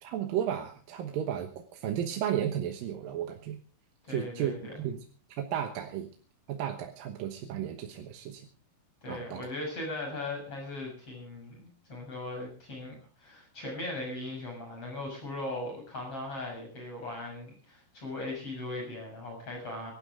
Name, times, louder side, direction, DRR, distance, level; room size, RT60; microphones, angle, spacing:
voice 1, 0.0-3.6 4.1-5.0 5.4-6.1 6.5-8.5 9.1-9.4, right 10 dB, 70° right, 4 dB, 2.7 m, -33 dB
voice 2, 4.0-4.7 9.0-19.9, left 2 dB, 35° left, 0 dB, 7.6 m, -39 dB
24.5 x 12.0 x 3.7 m, 0.38 s
omnidirectional pair, 4.4 m